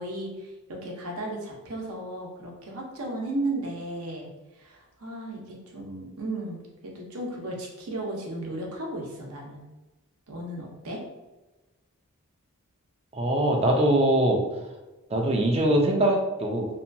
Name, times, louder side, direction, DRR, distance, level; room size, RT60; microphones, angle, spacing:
voice 1, 0.0-9.6 10.3-11.0, right 1 dB, 70° right, -1 dB, 0.7 m, -35 dB
voice 2, 13.1-14.4 15.1-16.7, right 1 dB, 25° right, 1 dB, 0.4 m, -22 dB
2.7 x 2.2 x 2.6 m, 1.1 s
head